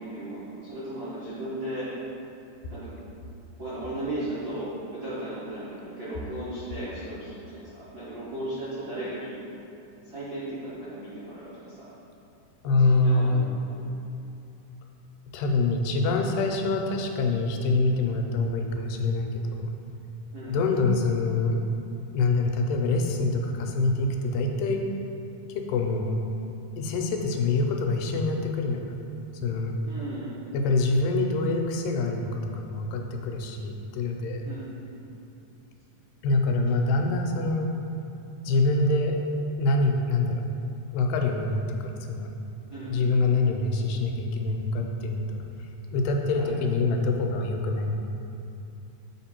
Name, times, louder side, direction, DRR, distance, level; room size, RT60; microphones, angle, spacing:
voice 1, 0.0-1.9 2.7-2.9 3.6-9.4 10.1-11.9 12.6-13.7 20.3-20.6 29.8-30.6 34.4-34.8 42.7-43.4 46.3-46.5, right 1 dB, 85° right, -12 dB, 0.8 m, -36 dB
voice 2, 12.6-13.5 15.3-19.7 20.5-21.6 22.1-24.8 25.7-26.2 26.8-28.9 29.4-29.8 30.5-34.5 36.2-37.7 38.4-39.2 39.6-40.4 40.9-42.3 42.9-45.4 45.9-48.0, left 3 dB, 90° left, 3 dB, 2.3 m, -25 dB
6.5 x 3.7 x 4.3 m, 2.7 s
omnidirectional pair, 3.8 m